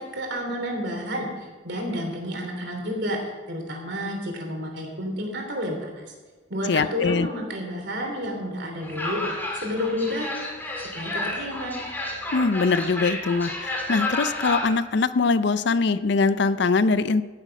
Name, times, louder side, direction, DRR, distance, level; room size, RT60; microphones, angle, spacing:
voice 1, 0.0-3.2 3.5-6.1 6.5-9.2 9.5-10.3 10.7-11.7, equal, 60° right, 2 dB, 3.1 m, -30 dB
voice 2, 6.7-7.3 12.3-17.2, left 4 dB, 55° left, 14 dB, 0.5 m, -22 dB
sound 1, 8.8-14.8, left 1 dB, 10° left, 1.7 m, -31 dB
15.5 x 7.5 x 5.2 m, 1.4 s
head